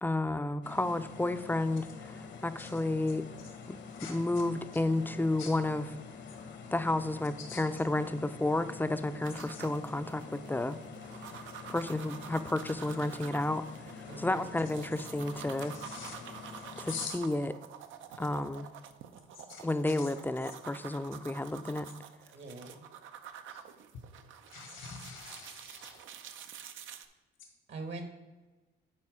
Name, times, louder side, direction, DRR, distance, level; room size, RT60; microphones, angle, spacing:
voice 1, 0.0-3.3 4.1-5.9 6.7-10.8 11.7-13.6 14.2-15.7 16.8-17.5 18.2-18.7 19.6-21.9, left 2 dB, 10° left, 11 dB, 0.5 m, -31 dB
sound 1, 0.6-17.1, left 5 dB, 65° left, 1.1 m, -47 dB
voice 2, 3.9-4.4 5.4-5.5 7.5-7.6 9.5-9.6 15.6-16.2 16.9-17.1 19.3-20.1 23.5-23.6 24.5-26.1, left 6 dB, 80° left, 2 dB, 1.6 m, -44 dB
sound 2, 9.2-27.0, right 8 dB, 80° right, 0.6 m, -48 dB
voice 3, 14.1-14.5 22.3-22.8 27.7-28.1, right 2 dB, 65° right, 6 dB, 1.3 m, -42 dB
9.9 x 4.3 x 4.9 m, 1.2 s
cardioid pair, 90°, 20 cm